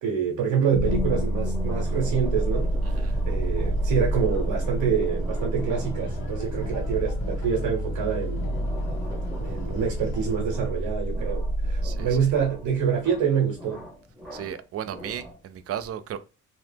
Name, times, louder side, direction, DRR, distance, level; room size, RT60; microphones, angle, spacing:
voice 1, 0.0-8.6 9.4-13.8, right 7 dB, 80° right, 1.0 m, -26 dB
sound 1, 0.7-12.8, right 1 dB, 80° left, 0.7 m, -28 dB
sound 2, 0.8-15.6, equal, ahead, 1.2 m, -43 dB
sound 3, 1.6-10.4, left 1 dB, 60° left, 1.5 m, -42 dB
voice 2, 11.8-12.3 14.3-16.2, right 9 dB, 50° right, 0.4 m, -35 dB
2.9 x 2.0 x 3.3 m
cardioid pair, 80°, 32 cm